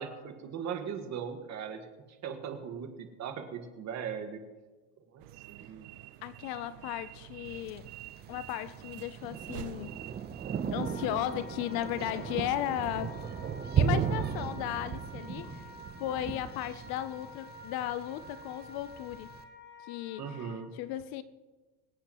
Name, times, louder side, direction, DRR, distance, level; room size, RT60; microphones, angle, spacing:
voice 1, 0.0-4.4 5.1-5.9 20.2-20.8, right 7 dB, 35° right, 1.6 m, -39 dB
sound 1, 5.2-13.3, right 15 dB, 80° right, 0.7 m, -49 dB
voice 2, 6.2-7.9 8.3-10.0 10.7-13.2 13.8-15.7 16.0-19.3 19.8-20.2 20.8-21.2, left 13 dB, 55° left, 0.6 m, -35 dB
Thunder, 7.5-19.4, right 7 dB, 20° right, 0.7 m, -36 dB
Wind instrument woodwind instrument, 10.8-20.6, left 3 dB, 25° left, 4.9 m, -50 dB
24.5 x 8.4 x 3.0 m
supercardioid pair, 135°, 45 cm